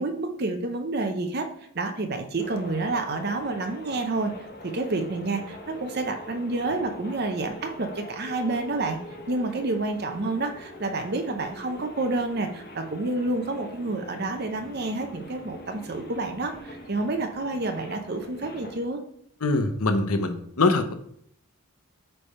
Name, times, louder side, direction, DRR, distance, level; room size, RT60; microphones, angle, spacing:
voice 1, 0.0-1.5 1.7-4.3 4.6-9.0 9.3-19.0, right 2 dB, 45° right, 6 dB, 0.7 m, -29 dB
sound 1, 2.4-18.9, equal, 45° left, 1.3 m, -43 dB
voice 2, 19.4-20.9, left 3 dB, 80° left, 7 dB, 1.0 m, -23 dB
8.7 x 3.4 x 5.5 m, 0.69 s
head